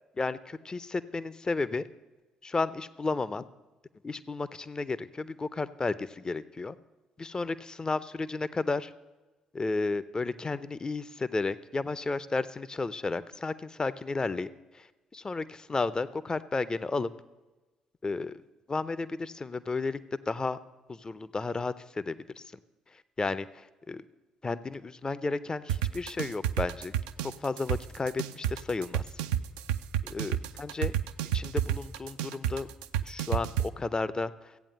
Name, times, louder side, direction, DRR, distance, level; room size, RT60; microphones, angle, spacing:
voice 1, 0.2-1.8 2.4-3.5 4.0-6.8 7.2-8.9 9.5-14.5 14.7-14.9 15.1-17.1 18.0-18.4 18.7-20.0 20.3-20.6 20.9-22.4 23.2-24.0 24.4-26.9 27.2-29.0 30.1-30.9 31.3-32.7 33.1-34.3, left 3 dB, 25° left, 16 dB, 0.6 m, -32 dB
sound 1, 25.7-33.7, right 10 dB, 65° right, 0.4 m, -29 dB
14.0 x 8.9 x 6.7 m, 1.2 s
figure-of-eight pair, 45°, 3 cm